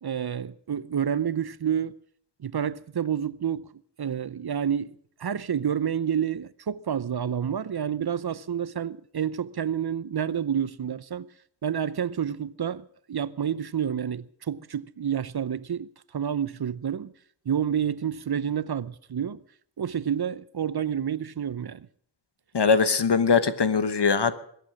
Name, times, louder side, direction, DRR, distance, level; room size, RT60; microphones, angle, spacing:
voice 1, 0.0-2.0 2.4-3.7 4.0-11.3 11.6-17.1 17.5-19.4 19.8-21.9, right 8 dB, 55° right, 0.6 m, -29 dB
voice 2, 22.5-24.3, left 5 dB, 65° left, 1.2 m, -21 dB
21.5 x 9.2 x 6.3 m
wide cardioid pair, 75°, 45 cm